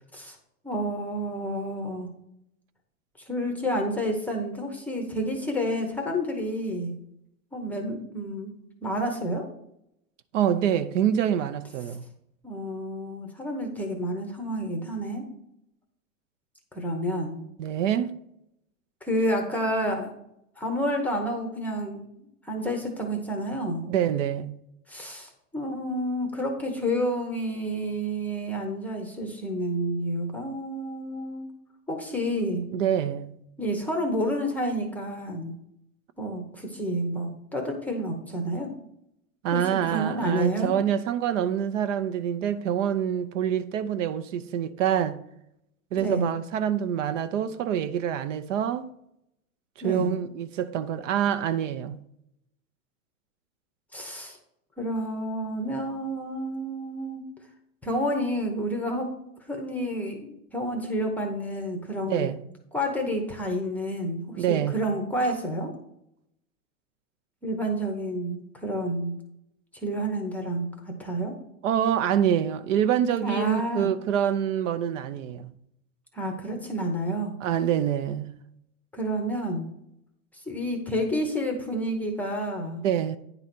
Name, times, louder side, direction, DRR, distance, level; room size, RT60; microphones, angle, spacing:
voice 1, 0.6-2.1 3.2-6.9 7.5-8.5 8.8-9.5 12.4-15.3 16.7-17.4 19.0-20.1 20.6-22.1 22.4-23.8 24.9-31.5 31.9-32.6 33.6-35.5 36.2-38.7 39.5-40.7 46.0-46.3 49.8-50.1 53.9-54.4 54.8-57.2 57.8-59.1 59.5-62.3 62.7-65.7 67.4-69.1 69.7-71.3 73.2-73.9 76.1-77.3 78.9-79.7 80.3-82.8, equal, 5° left, 0.7 m, -29 dB
voice 2, 10.3-12.0 17.6-18.1 23.9-24.5 32.7-33.3 39.4-45.2 45.9-48.9 49.8-52.0 62.0-62.4 64.4-64.7 71.6-75.5 77.4-78.3 82.8-83.2, right 9 dB, 65° right, 0.7 m, -26 dB
9.7 x 3.9 x 5.9 m
supercardioid pair, 160°, 40 cm